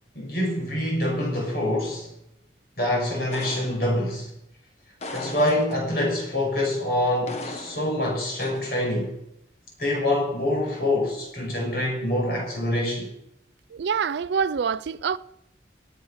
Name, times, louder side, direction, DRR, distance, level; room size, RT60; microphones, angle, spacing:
voice 1, 0.2-2.1 2.8-4.3 5.1-9.2 9.8-13.1, left 1 dB, 55° left, 5.5 m, -25 dB
sound 1, 3.3-4.2 5.0-6.1 7.3-8.0 8.4-8.8, left 2 dB, 35° left, 1.4 m, -37 dB
voice 2, 13.7-15.2, right 6 dB, 70° right, 0.4 m, -26 dB
18.0 x 8.6 x 5.7 m
head